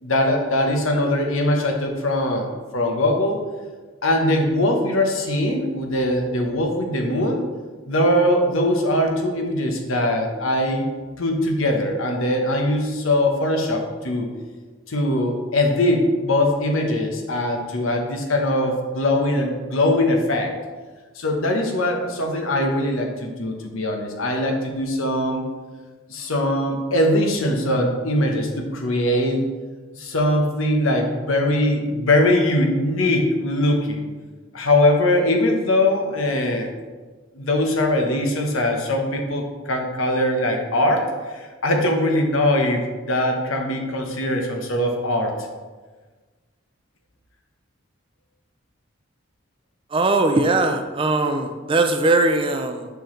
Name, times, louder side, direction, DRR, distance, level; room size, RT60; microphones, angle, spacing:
voice 1, 0.0-3.4 4.0-7.4 7.8-10.9 11.2-14.3 14.9-20.5 21.1-25.4 26.1-29.4 29.9-34.0 34.5-36.7 37.3-45.3, left 1 dB, 80° left, 3 dB, 1.1 m, -21 dB
voice 2, 49.9-52.9, right 2 dB, 25° right, 6 dB, 0.4 m, -20 dB
6.8 x 6.0 x 3.2 m, 1.3 s
head